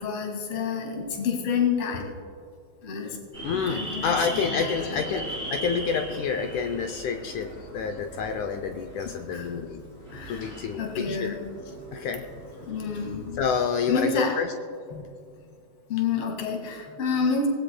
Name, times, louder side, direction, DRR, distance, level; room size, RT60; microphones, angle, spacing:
voice 1, 0.0-2.1 2.8-3.2 3.7-5.0 9.0-9.6 10.1-10.5 10.8-11.5 12.6-13.4 13.9-14.3 14.9-15.1 15.9-17.5, left 5 dB, 45° left, 1 dB, 2.6 m, -29 dB
sound 1, 3.3-13.7, right 1 dB, 20° left, 3.6 m, -39 dB
voice 2, 3.4-9.8 10.3-11.4 11.9-12.3 13.4-14.5, left 6 dB, 80° left, 5 dB, 1.8 m, -28 dB
25.0 x 19.0 x 2.2 m, 2.4 s
omnidirectional pair, 4.2 m